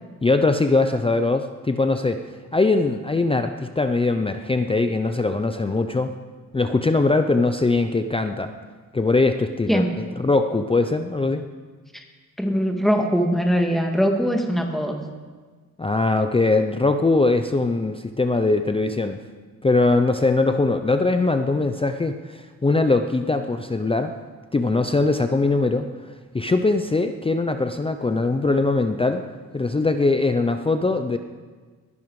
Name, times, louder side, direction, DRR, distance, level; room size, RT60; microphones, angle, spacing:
voice 1, 0.2-2.2 2.5-6.1 6.5-8.5 8.9-9.8 10.2-11.4 15.8-19.2 19.6-24.1 24.5-25.9 26.3-29.3 29.5-31.2, left 3 dB, 15° left, 7 dB, 0.5 m, -21 dB
voice 2, 12.4-15.0, equal, ahead, 3 dB, 1.7 m, -21 dB
20.5 x 11.0 x 4.8 m, 1.4 s
wide cardioid pair, 135°, 35 cm